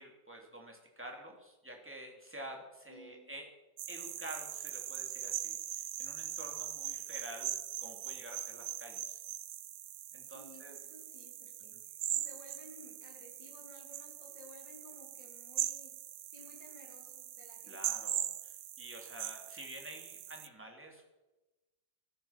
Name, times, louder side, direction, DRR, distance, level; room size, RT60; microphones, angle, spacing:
voice 1, 0.0-3.5 3.9-9.2 10.1-10.7 11.7-11.8 17.7-21.1, right 1 dB, 5° right, 0 dB, 2.8 m, -49 dB
voice 2, 2.9-3.3 10.2-16.0 16.3-17.8, left 1 dB, 75° left, 1 dB, 4.1 m, -56 dB
sound 1, 3.8-20.5, right 11 dB, 65° right, 0.8 m, -41 dB
14.5 x 13.5 x 5.9 m, 1.1 s
omnidirectional pair, 2.0 m